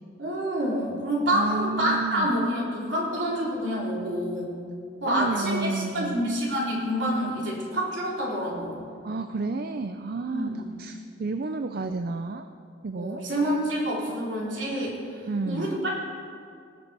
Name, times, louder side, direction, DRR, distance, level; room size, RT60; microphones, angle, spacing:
voice 1, 0.2-4.6 5.0-8.8 10.3-10.7 13.0-15.9, equal, 75° right, -4 dB, 3.3 m, -28 dB
voice 2, 1.3-2.3 5.1-6.3 9.0-10.5 10.8-12.5 12.8-13.2 15.3-15.8, right 3 dB, 55° right, 8 dB, 0.4 m, -31 dB
19.5 x 6.7 x 4.8 m, 2.3 s
head